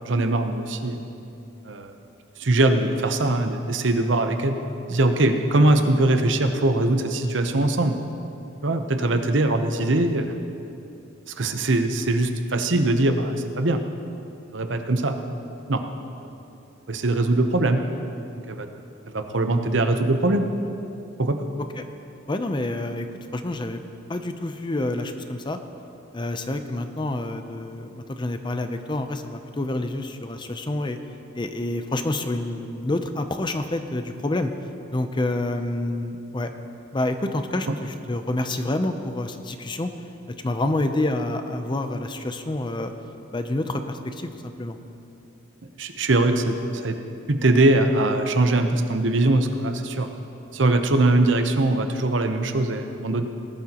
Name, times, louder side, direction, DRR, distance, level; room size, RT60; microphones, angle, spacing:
voice 1, 0.1-1.0 1.6-1.9 2.4-4.6 4.9-8.0 8.6-10.3 11.3-13.8 14.5-15.2 15.7-15.8 16.2-16.3 16.9-17.8 18.5-18.7 19.1-20.4 21.2-21.5 37.7-37.8 45.8-47.0 47.3-50.1 50.5-53.2, right 2 dB, 65° right, 6 dB, 0.8 m, -21 dB
voice 2, 22.3-23.8 24.1-25.6 26.1-31.0 31.3-34.5 34.9-36.5 36.9-39.9 40.3-42.9 43.3-44.8, left 2 dB, 25° left, 7 dB, 0.6 m, -28 dB
19.0 x 12.0 x 3.0 m, 2.7 s
head